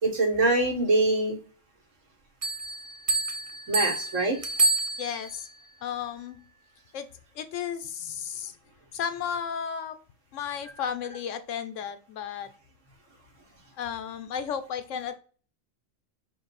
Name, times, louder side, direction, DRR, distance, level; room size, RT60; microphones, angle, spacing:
voice 1, 0.0-1.4 3.7-4.4, right 2 dB, 75° right, 1 dB, 1.5 m, -24 dB
Bell, 2.4-5.5, right 2 dB, 40° right, 0.5 m, -28 dB
voice 2, 5.0-5.5 5.8-6.4 6.9-7.1 7.4-8.5 8.9-10.0 10.3-12.5 13.8-15.2, left 8 dB, 75° left, 10 dB, 0.9 m, -33 dB
5.1 x 2.3 x 4.0 m, 0.40 s
omnidirectional pair, 1.3 m